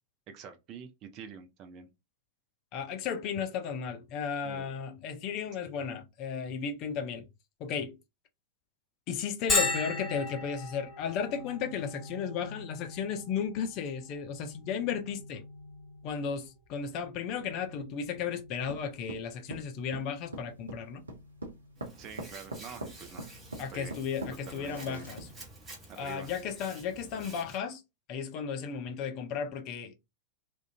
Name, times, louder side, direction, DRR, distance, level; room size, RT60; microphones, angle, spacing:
voice 1, 0.3-1.9 4.4-4.8 22.0-23.3 23.7-24.0 24.5-25.1 25.9-26.3, right 6 dB, 35° right, 0.5 m, -46 dB
voice 2, 2.7-7.3 7.6-8.0 9.1-15.4 16.0-21.0 23.6-25.2 26.0-27.8 28.1-29.9, left 7 dB, 40° left, 0.5 m, -34 dB
Bell, 9.5-24.9, left 2 dB, 20° left, 1.4 m, -39 dB
sound 1, 18.7-25.5, right 2 dB, 75° right, 0.7 m, -42 dB
Hands, 21.8-27.6, right 2 dB, 15° right, 1.0 m, -50 dB
2.4 x 2.2 x 2.6 m
figure-of-eight pair, 90°, 0 cm